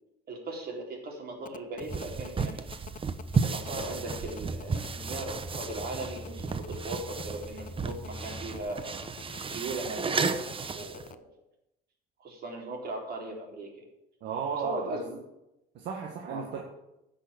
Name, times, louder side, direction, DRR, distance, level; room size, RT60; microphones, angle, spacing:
voice 1, 0.3-2.7 3.4-9.0 9.5-11.3 12.2-13.8 14.5-15.2 16.3-16.4, right 2 dB, 60° right, 1 dB, 3.9 m, -38 dB
sound 1, 1.4-11.1, left 9 dB, 45° left, 0.8 m, -47 dB
sound 2, 1.8-11.1, right 5 dB, 30° right, 0.9 m, -34 dB
sound 3, 3.1-8.6, left 1 dB, 15° left, 3.9 m, -44 dB
voice 2, 14.2-15.0 15.7-16.6, right 6 dB, 75° right, 0 dB, 1.7 m, -34 dB
10.5 x 6.3 x 8.6 m, 0.88 s
cardioid pair, 85°, 18 cm